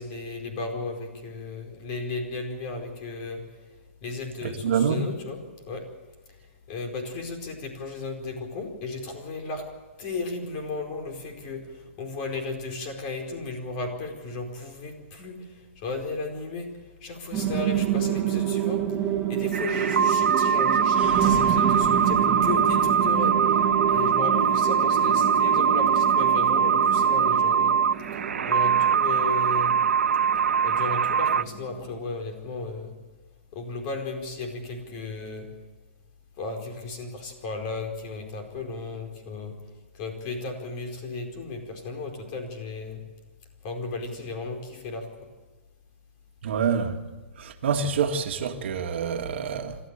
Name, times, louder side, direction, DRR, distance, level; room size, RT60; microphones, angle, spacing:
voice 1, 0.0-3.4 4.0-5.9 6.7-9.7 10.0-16.7 17.0-27.8 28.4-29.8 30.6-32.9 33.5-35.5 36.4-39.6 39.9-43.0 43.6-45.1, left 3 dB, 35° left, 4.6 m, -35 dB
voice 2, 4.4-5.0 46.4-47.0 47.4-49.8, right 6 dB, 60° right, 2.0 m, -26 dB
sound 1, 17.3-31.9, right 9 dB, 20° right, 2.3 m, -28 dB
sound 2, 19.5-31.4, right 7 dB, 85° right, 0.9 m, -22 dB
26.5 x 13.5 x 8.9 m
hypercardioid pair, 145°, 7 cm